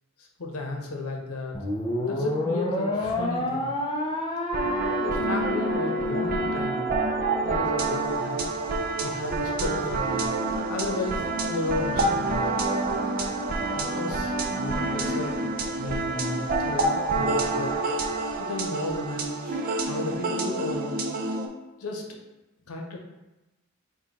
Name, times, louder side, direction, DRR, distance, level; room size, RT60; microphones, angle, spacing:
voice 1, 0.2-1.6 2.0-3.7 5.0-6.9 7.4-8.5 9.0-10.3 10.5-12.5 13.7-15.4 15.7-18.0 18.4-21.0 21.8-22.2 22.7-23.0, left 2 dB, 90° left, 2 dB, 0.8 m, -34 dB
sound 1, 1.5-8.1, left 1 dB, 20° left, 0.5 m, -29 dB
sound 2, 4.5-21.5, right 2 dB, 40° right, 0.4 m, -28 dB
4.8 x 2.3 x 4.1 m, 1.0 s
head